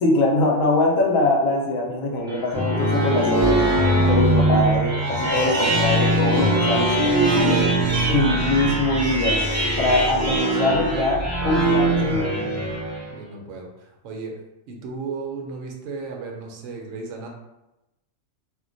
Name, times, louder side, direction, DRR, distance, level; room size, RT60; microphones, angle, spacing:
voice 1, 0.0-3.6 4.1-7.6 8.1-9.4 9.8-12.3, left 2 dB, 90° left, -1 dB, 1.1 m, -22 dB
sound 1, 2.3-13.1, right 1 dB, 20° right, 0.5 m, -21 dB
voice 2, 12.6-14.4 14.7-17.3, right 4 dB, 75° right, 1 dB, 0.9 m, -35 dB
2.4 x 2.1 x 3.8 m, 0.94 s
omnidirectional pair, 1.4 m